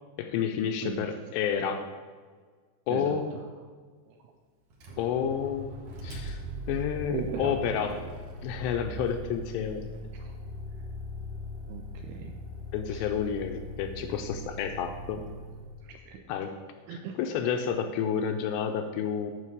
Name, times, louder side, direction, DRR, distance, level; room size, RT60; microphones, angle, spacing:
voice 1, 0.2-1.9 2.9-3.4 5.0-6.4 6.7-8.1 8.4-9.9 12.7-15.2 16.3-16.6 16.9-19.3, left 7 dB, 80° left, 6 dB, 2.5 m, -30 dB
voice 2, 2.9-3.4 4.1-4.3 7.1-7.6 10.2-10.3 11.7-12.4 12.9-13.0 15.8-16.3 16.9-17.2, right 8 dB, 85° right, 4 dB, 2.4 m, -38 dB
Motor vehicle (road), 4.7-15.9, left 1 dB, 60° right, 2.3 m, -40 dB
9.8 x 5.3 x 7.2 m, 1.5 s
omnidirectional pair, 5.3 m